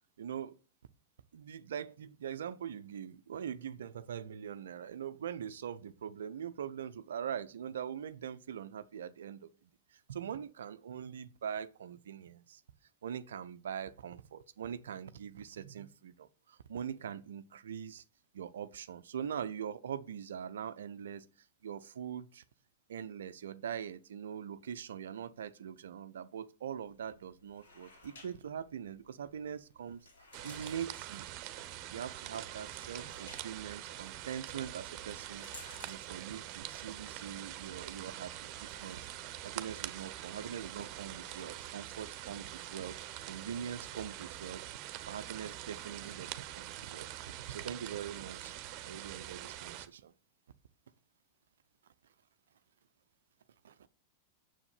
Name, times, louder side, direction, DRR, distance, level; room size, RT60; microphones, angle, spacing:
voice 1, 0.2-0.6 1.3-9.5 9.9-12.6 13.0-18.0 18.3-21.3 21.6-22.4 22.9-30.0 30.4-31.3 31.9-35.5 35.9-43.0 43.3-48.5 48.8-50.1 53.6-53.9, right 8 dB, 65° right, 0.7 m, -42 dB
sound 1, 26.7-41.7, left 2 dB, 65° left, 4.4 m, -60 dB
sound 2, 30.3-49.9, right 13 dB, 40° right, 1.1 m, -45 dB
9.6 x 7.2 x 6.9 m
figure-of-eight pair, 90°, 0 cm